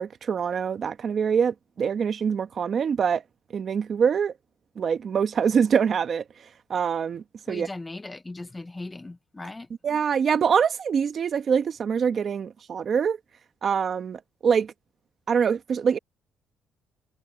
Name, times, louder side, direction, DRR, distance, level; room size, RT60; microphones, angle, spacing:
voice 1, 0.0-3.2 3.5-4.3 4.8-6.2 6.7-7.7 9.8-13.2 13.6-14.7 15.3-16.0, right 7 dB, 45° right, 1.6 m, -24 dB
voice 2, 7.5-9.7, left 2 dB, 15° left, 1.3 m, -38 dB
cardioid pair, 110°, 0 cm